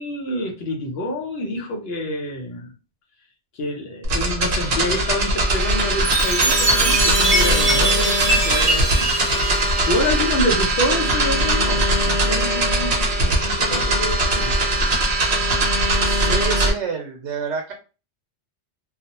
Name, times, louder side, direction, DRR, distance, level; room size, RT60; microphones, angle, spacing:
voice 1, 0.0-2.7 3.5-9.1 9.9-14.6, left 1 dB, 65° left, 1 dB, 0.9 m, -27 dB
sound 1, 4.0-16.7, right 1 dB, 55° right, 0.9 m, -20 dB
Chime, 6.0-10.7, right 1 dB, 35° right, 0.6 m, -22 dB
voice 2, 16.0-17.7, right 6 dB, 85° right, 1 dB, 0.9 m, -28 dB
2.4 x 2.0 x 2.8 m, 0.33 s
omnidirectional pair, 1.2 m